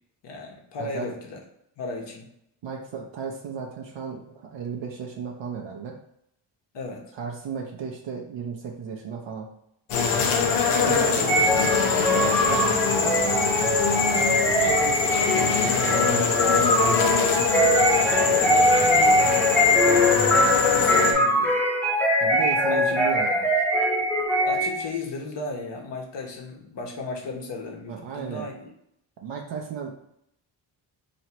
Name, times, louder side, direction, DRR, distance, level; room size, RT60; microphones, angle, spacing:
voice 1, 0.2-1.4 1.8-2.3 6.7-7.1 10.8-13.4 13.9-14.3 14.6-16.6 17.9-21.6 22.7-22.9 24.4-28.7, left 3 dB, 60° left, 1 dB, 1.2 m, -35 dB
voice 2, 2.6-5.9 7.1-9.5 10.9-11.4 12.1-12.9 15.9-16.3 16.6-16.9 22.2-23.5 27.9-28.5 29.2-29.9, right 6 dB, 65° right, 0 dB, 0.8 m, -34 dB
sound 1, 9.9-21.1, left 5 dB, 85° left, 0.8 m, -23 dB
sound 2, 11.3-24.9, equal, 5° left, 0.7 m, -22 dB
3.1 x 2.8 x 4.5 m, 0.75 s
cardioid pair, 70°, 48 cm